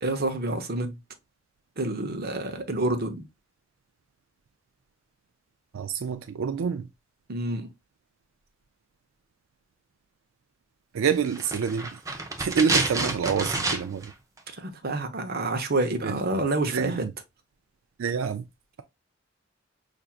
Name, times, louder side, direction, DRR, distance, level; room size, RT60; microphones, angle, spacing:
voice 1, 0.0-1.0 1.8-3.3 7.3-7.7 14.5-17.0, right 2 dB, 50° right, 0.8 m, -28 dB
voice 2, 5.7-6.9 10.9-12.0 12.4-14.1 16.0-16.2 16.7-17.1 18.0-18.4, right 6 dB, 90° right, 0.4 m, -27 dB
sound 1, 11.3-14.1 14.4-14.5, right 2 dB, 15° right, 0.7 m, -28 dB
5.7 x 2.6 x 2.4 m
head